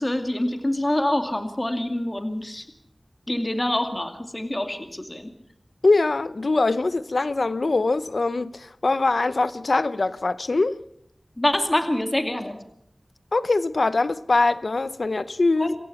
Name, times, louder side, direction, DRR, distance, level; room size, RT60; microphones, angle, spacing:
voice 1, 0.0-2.7 3.3-5.3 11.4-12.6 15.6-15.7, left 1 dB, 30° left, 2.4 m, -25 dB
voice 2, 5.8-10.8 13.3-15.8, left 3 dB, 80° left, 0.8 m, -22 dB
27.5 x 15.5 x 7.1 m
wide cardioid pair, 50°, 0 cm